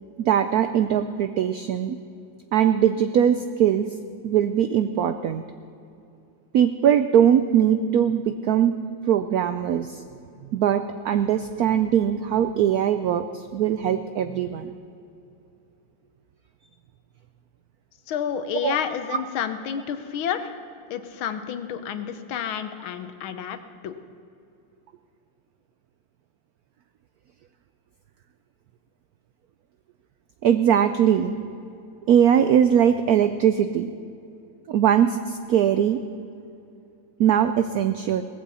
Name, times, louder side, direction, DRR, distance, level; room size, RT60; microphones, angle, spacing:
voice 1, 0.2-2.0 2.5-3.9 4.2-5.4 6.5-8.7 9.1-10.0 10.5-14.7 18.6-18.8 19.1-19.2 30.4-31.4 32.1-33.9 34.7-36.0 37.2-38.2, right 9 dB, 85° right, 10 dB, 0.8 m, -21 dB
voice 2, 18.1-20.5 20.9-23.6 23.8-24.0, left 8 dB, 85° left, 10 dB, 1.7 m, -30 dB
18.5 x 15.0 x 4.2 m, 2.6 s
omnidirectional pair, 2.2 m